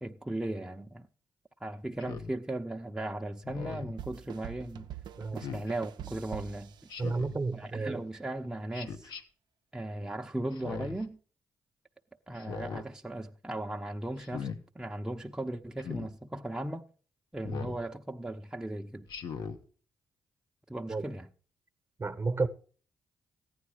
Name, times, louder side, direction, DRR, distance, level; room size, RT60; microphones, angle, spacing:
voice 1, 0.0-1.1 1.6-4.9 5.3-6.9 7.5-9.1 9.7-11.2 12.3-14.5 14.7-16.9 17.3-19.1 20.7-21.3, right 1 dB, 10° right, 0.8 m, -37 dB
Speech synthesizer, 2.0-2.3 3.4-3.9 5.4-5.7 6.9-7.4 8.7-9.2 10.5-11.0 12.3-12.9 14.2-14.6 15.8-16.1 17.4-17.8 19.1-19.6, left 6 dB, 70° left, 1.0 m, -39 dB
sound 1, 4.0-7.6, right 11 dB, 70° right, 0.5 m, -45 dB
voice 2, 7.0-8.0 20.9-21.0 22.0-22.5, right 3 dB, 30° right, 1.0 m, -31 dB
14.5 x 9.6 x 4.9 m
supercardioid pair, 50°, 8 cm